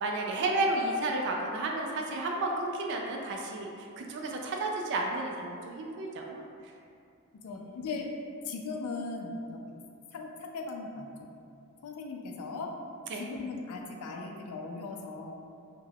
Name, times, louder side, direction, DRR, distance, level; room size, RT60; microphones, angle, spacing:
voice 1, 0.0-3.7 4.0-6.4 7.5-7.6 13.1-13.2, right 2 dB, 55° right, 1 dB, 0.3 m, -32 dB
voice 2, 7.4-8.1 8.4-9.7 10.1-11.1 11.8-12.8 13.2-15.3, left 3 dB, 85° left, 2 dB, 0.3 m, -38 dB
2.3 x 2.1 x 3.2 m, 2.5 s
head